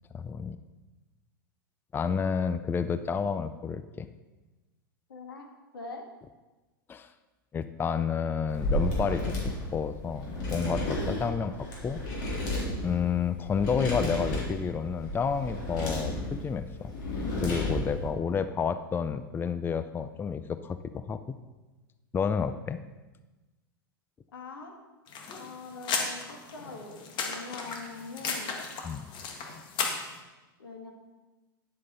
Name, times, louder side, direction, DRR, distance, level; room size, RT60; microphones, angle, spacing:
voice 1, 0.1-0.6 1.9-4.1 6.9-7.1 7.5-12.0 12.8-16.9 17.4-21.2 22.1-22.8 28.8-29.0, left 6 dB, 15° left, 12 dB, 0.5 m, -30 dB
voice 2, 5.1-5.5 5.7-6.0 24.3-24.7 25.4-28.6 30.6-30.9, left 3 dB, 80° left, 3 dB, 1.6 m, -43 dB
sound 1, 8.5-18.1, left 1 dB, 60° left, 3.8 m, -32 dB
sound 2, 25.1-30.2, left 5 dB, 40° left, 1.7 m, -35 dB
10.5 x 7.5 x 4.1 m, 1.1 s
hypercardioid pair, 95°, 12 cm